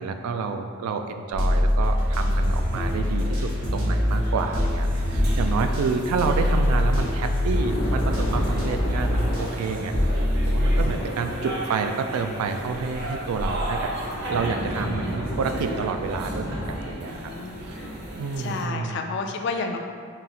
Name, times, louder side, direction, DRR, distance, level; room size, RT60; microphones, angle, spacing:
voice 1, 0.0-9.9 10.4-13.9 14.3-17.3 17.6-17.8 18.1-19.0, right 5 dB, 90° right, 8 dB, 0.3 m, -29 dB
sound 1, 1.3-10.8, left 1 dB, 65° right, 1.2 m, -23 dB
sound 2, 1.8-18.6, right 1 dB, 45° right, 0.7 m, -36 dB
Thunder / Rain, 6.8-18.1, equal, 70° left, 0.9 m, -34 dB
voice 2, 17.1-18.0 18.4-19.8, left 4 dB, 50° left, 4 dB, 0.3 m, -31 dB
4.0 x 2.4 x 4.0 m, 2.2 s
head